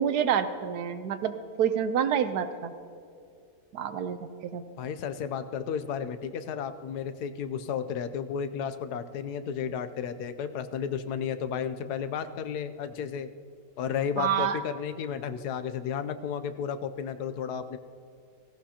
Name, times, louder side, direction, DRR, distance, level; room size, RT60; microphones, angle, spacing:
voice 1, 0.0-2.7 3.7-4.6 14.2-14.6, right 8 dB, 85° right, 10 dB, 1.3 m, -28 dB
voice 2, 4.8-13.3 13.8-17.8, left 7 dB, 85° left, 10 dB, 1.2 m, -33 dB
16.5 x 15.0 x 2.9 m, 2.4 s
omnidirectional pair, 1.6 m